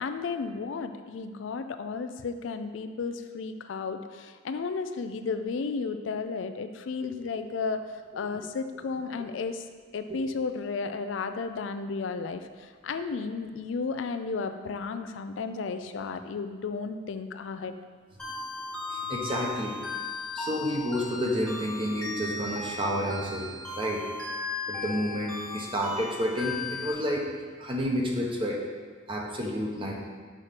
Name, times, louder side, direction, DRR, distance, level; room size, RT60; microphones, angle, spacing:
voice 1, 0.0-7.8 8.1-9.6 9.9-17.7, left 4 dB, 80° left, 9 dB, 0.4 m, -33 dB
sound 1, 18.2-26.9, left 3 dB, 5° left, 1.1 m, -36 dB
voice 2, 18.9-19.8 20.3-24.1 24.7-27.2 27.6-28.6 29.1-29.9, equal, 25° right, 0 dB, 0.9 m, -30 dB
6.2 x 4.3 x 5.1 m, 1.5 s
head